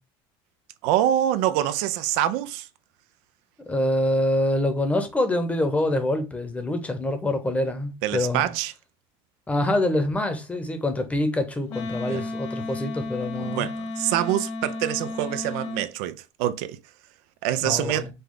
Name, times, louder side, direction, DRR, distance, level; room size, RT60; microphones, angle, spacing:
voice 1, 0.8-2.7 8.0-8.7 12.0-12.2 13.4-16.8 17.4-18.1, right 12 dB, 75° right, 0.5 m, -25 dB
voice 2, 3.7-8.5 9.5-13.7 17.6-18.1, left 1 dB, 10° left, 0.8 m, -25 dB
Wind instrument woodwind instrument, 11.7-15.9, left 2 dB, 70° left, 1.4 m, -33 dB
5.2 x 2.3 x 3.8 m
cardioid pair, 140°, 13 cm